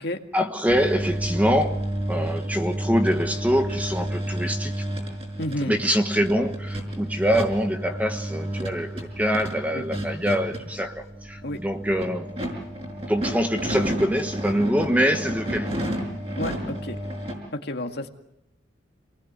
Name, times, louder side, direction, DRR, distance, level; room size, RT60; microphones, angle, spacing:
voice 1, 0.3-4.8 5.7-12.3 13.1-15.8, equal, 10° right, 6 dB, 1.3 m, -24 dB
sound 1, 0.7-17.3, right 1 dB, 30° right, 5.9 m, -31 dB
voice 2, 5.4-5.7 9.7-9.8 11.4-11.6 16.4-17.0 17.5-18.1, left 1 dB, 55° left, 5 dB, 2.0 m, -30 dB
28.0 x 19.5 x 8.2 m, 0.84 s
head